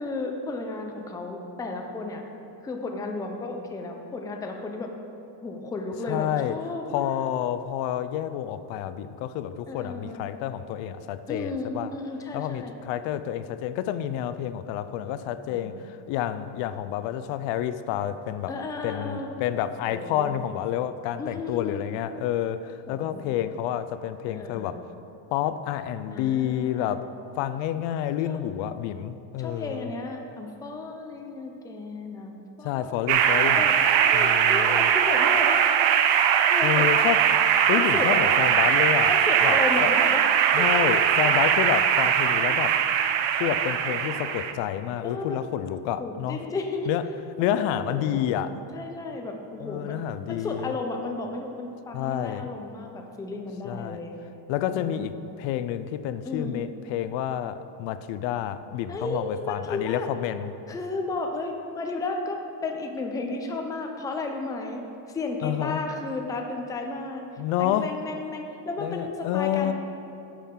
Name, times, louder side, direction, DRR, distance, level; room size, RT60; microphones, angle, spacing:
voice 1, 0.0-2.2 2.6-4.9 5.4-7.2 9.7-10.2 11.3-12.7 15.4-15.8 18.5-19.3 19.9-20.4 21.2-21.8 22.9-23.2 24.3-24.8 26.1-26.9 28.3-28.4 29.4-33.2 33.6-35.9 36.4-36.9 37.7-38.3 39.1-40.3 40.6-41.1 42.3-42.6 45.0-45.5 46.0-46.9 47.4-47.6 47.9-48.2 48.7-50.0 50.3-54.3 54.7-55.1 56.2-56.7 58.9-60.1 60.7-64.8 65.1-67.3 67.6-69.7, left 3 dB, 10° left, 3 dB, 0.4 m, -33 dB
voice 2, 6.1-6.5 6.9-11.9 12.3-18.5 18.8-24.8 25.3-27.1 27.4-29.9 32.6-33.6 34.1-34.9 36.6-37.3 37.7-39.1 39.4-39.9 40.5-42.8 43.3-46.4 46.9-47.0 47.4-48.5 49.6-50.7 51.9-52.5 53.6-54.0 54.5-60.5 65.4-65.8 67.4-67.9 68.8-69.7, left 11 dB, 75° left, 13 dB, 0.5 m, -29 dB
sound 1, 33.1-44.5, right 8 dB, 70° right, 0.7 m, -21 dB
9.8 x 7.3 x 3.7 m, 2.9 s
cardioid pair, 155°, 45 cm